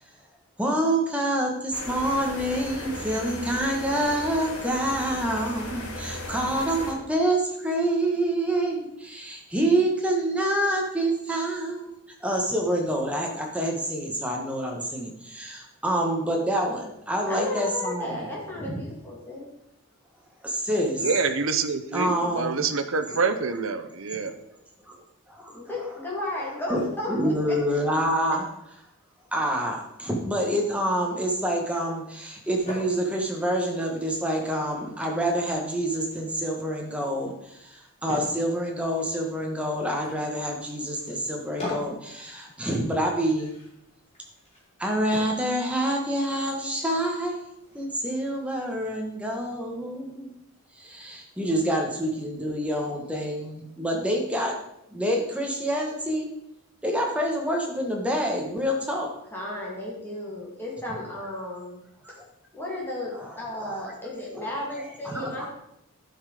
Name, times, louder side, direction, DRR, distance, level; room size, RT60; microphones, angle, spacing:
voice 1, 0.6-11.9 12.2-18.3 18.6-18.8 20.4-21.0 21.9-22.6 24.9-25.0 25.3-25.5 26.4-28.4 29.3-43.6 44.8-47.4 47.7-50.3 50.7-54.6 54.9-56.3 56.8-59.1 62.0-62.1 63.2-63.8 64.4-64.5 65.0-65.5, right 1 dB, 5° right, 0 dB, 1.4 m, -27 dB
sound 1, 1.7-6.9, left 1 dB, 90° left, 2.2 m, -36 dB
voice 2, 17.3-19.5 25.5-27.3 59.3-61.8 62.1-62.2 62.5-65.5, left 1 dB, 10° left, -4 dB, 2.6 m, -34 dB
voice 3, 21.0-24.4, right 4 dB, 65° right, 10 dB, 0.8 m, -26 dB
sound 2, 32.2-48.9, left 2 dB, 30° left, 3.6 m, -44 dB
11.5 x 5.8 x 5.0 m, 0.81 s
head